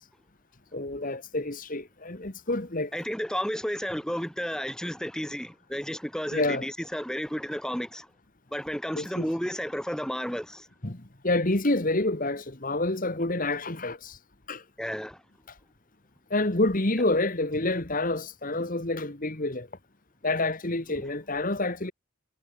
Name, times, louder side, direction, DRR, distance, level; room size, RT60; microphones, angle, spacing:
voice 1, 0.7-2.9 6.3-6.7 9.0-9.3 10.8-14.2 14.5-14.6 15.5-15.6 16.3-19.7 20.2-21.9, left 2 dB, 40° left, 1.7 m, -28 dB
voice 2, 2.9-8.1 8.5-10.7 14.8-15.2 18.6-18.7 21.0-21.1, equal, 5° left, 3.7 m, -32 dB
head